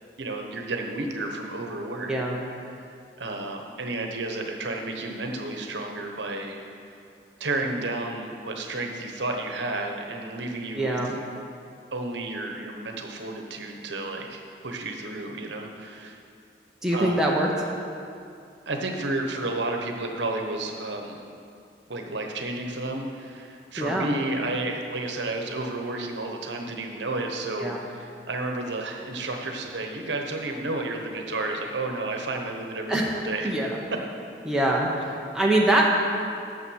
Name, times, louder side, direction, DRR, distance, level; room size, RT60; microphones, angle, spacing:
voice 1, 0.2-2.1 2.7-2.9 3.2-6.6 7.4-11.0 11.9-16.1 16.9-17.2 18.7-21.2 21.9-33.5, right 2 dB, 75° right, 3 dB, 1.0 m, -31 dB
voice 2, 2.1-2.4 10.8-11.1 16.8-17.7 23.8-24.1 27.6-27.8 32.9-33.1 33.4-33.8 34.4-35.9, right 1 dB, 5° right, -3 dB, 0.9 m, -24 dB
8.8 x 6.8 x 6.3 m, 2.5 s
head